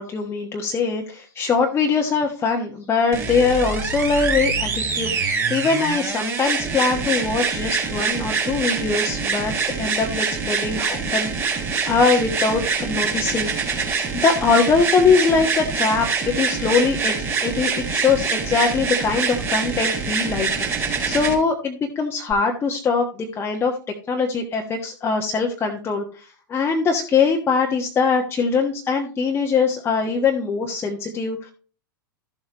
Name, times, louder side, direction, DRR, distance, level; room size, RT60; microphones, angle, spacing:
voice 1, 0.0-13.5 14.1-17.2 17.4-20.5 20.7-23.7 24.1-31.5, left 5 dB, 20° left, 1 dB, 1.3 m, -22 dB
sound 1, 3.1-21.3 22.3-22.4, right 5 dB, 20° right, 3.9 m, -25 dB
13.5 x 7.3 x 3.0 m, 0.37 s
figure-of-eight pair, 100°, 12 cm